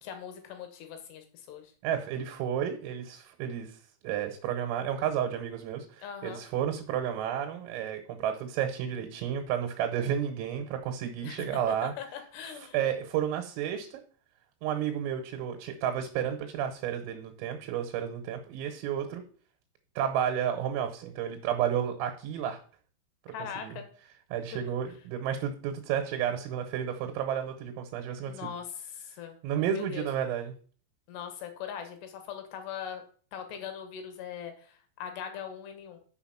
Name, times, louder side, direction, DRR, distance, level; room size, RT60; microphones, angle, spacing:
voice 1, 0.0-1.7 6.0-6.4 11.2-12.8 23.3-23.9 24.5-24.6 28.2-29.4 29.7-30.1 31.1-33.0 33.3-36.0, left 8 dB, 70° left, 7 dB, 2.9 m, -41 dB
voice 2, 1.8-3.8 4.0-11.9 12.7-14.0 14.6-19.2 20.0-22.6 23.3-23.8 24.3-28.3 29.4-30.5, right 9 dB, 90° right, 5 dB, 3.8 m, -31 dB
7.0 x 6.8 x 5.7 m, 0.43 s
omnidirectional pair, 5.9 m